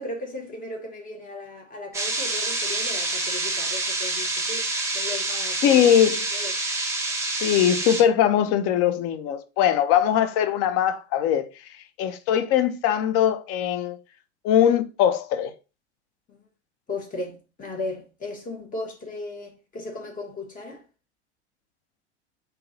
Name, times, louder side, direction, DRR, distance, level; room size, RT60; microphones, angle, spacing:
voice 1, 0.0-6.5 16.3-16.4 16.9-20.8, left 2 dB, 25° left, 1.5 m, -36 dB
sound 1, 1.9-8.0, right 2 dB, 10° right, 1.0 m, -27 dB
voice 2, 5.6-6.3 7.4-11.5 12.0-14.0 14.4-15.5, left 9 dB, 40° left, 0.6 m, -21 dB
3.7 x 2.7 x 3.9 m
hypercardioid pair, 85°, 35 cm